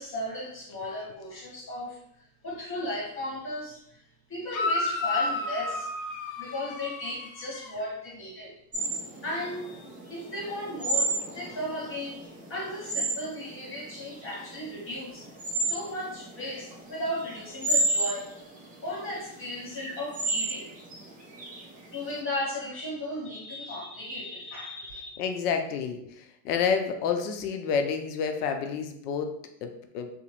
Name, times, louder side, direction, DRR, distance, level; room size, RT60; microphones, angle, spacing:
voice 1, 0.0-2.0 2.4-5.9 6.4-8.5 9.2-12.2 12.5-15.2 15.6-18.3 18.8-20.7 21.9-25.1, left 1 dB, 30° left, -4 dB, 1.3 m, -35 dB
sound 1, 4.5-7.8, left 2 dB, 45° left, 0.6 m, -31 dB
sound 2, 8.7-22.1, right 2 dB, 20° right, 0.7 m, -32 dB
voice 2, 25.2-30.1, left 6 dB, 85° left, 6 dB, 0.6 m, -29 dB
2.8 x 2.0 x 2.9 m, 0.73 s
supercardioid pair, 105°, 45 cm